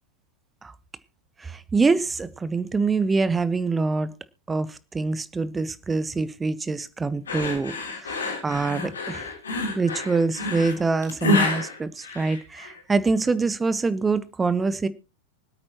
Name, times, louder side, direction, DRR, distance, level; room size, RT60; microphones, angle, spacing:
voice 1, 1.4-4.1 4.5-7.7 8.0-8.2 8.4-9.3 9.8-14.9, right 4 dB, 15° right, 0.8 m, -25 dB
sound 1, 7.3-12.8, left 2 dB, 70° left, 3.3 m, -28 dB
24.5 x 8.7 x 2.9 m
figure-of-eight pair, 90°, 0 cm